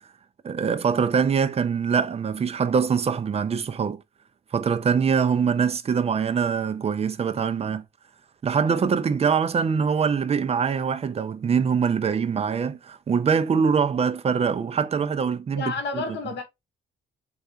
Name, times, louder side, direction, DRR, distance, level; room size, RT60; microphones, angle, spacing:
voice 1, 0.4-4.0 4.5-7.8 8.4-16.0, right 6 dB, 30° right, 0.4 m, -23 dB
voice 2, 15.5-16.4, left 4 dB, 60° left, 0.9 m, -31 dB
3.3 x 2.4 x 2.7 m
cardioid pair, 90°, 20 cm